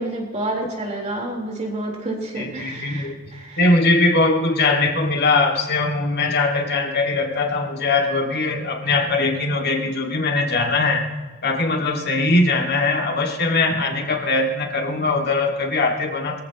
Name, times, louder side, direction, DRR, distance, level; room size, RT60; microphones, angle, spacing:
voice 1, 0.0-3.6, right 1 dB, 35° right, -1 dB, 3.8 m, -29 dB
voice 2, 2.4-3.2 3.6-11.1 11.4-16.4, left 3 dB, 50° left, 2 dB, 2.0 m, -21 dB
22.5 x 15.0 x 3.0 m, 1.3 s
head